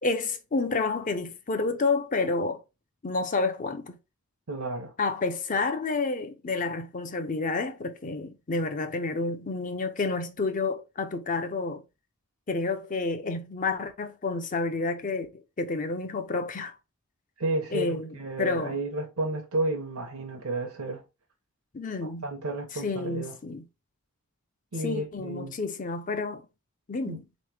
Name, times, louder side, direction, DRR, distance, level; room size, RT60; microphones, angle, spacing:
voice 1, 0.0-2.6 3.0-4.0 5.0-11.8 12.5-16.7 17.7-18.8 21.7-22.3 22.7-23.6 24.8-26.4 26.9-27.2, left 3 dB, 35° left, 0.6 m, -30 dB
voice 2, 4.5-4.9 17.4-21.0 22.0-23.4 24.7-25.6 27.1-27.2, right 2 dB, 85° right, 0.8 m, -32 dB
4.0 x 3.1 x 3.4 m
head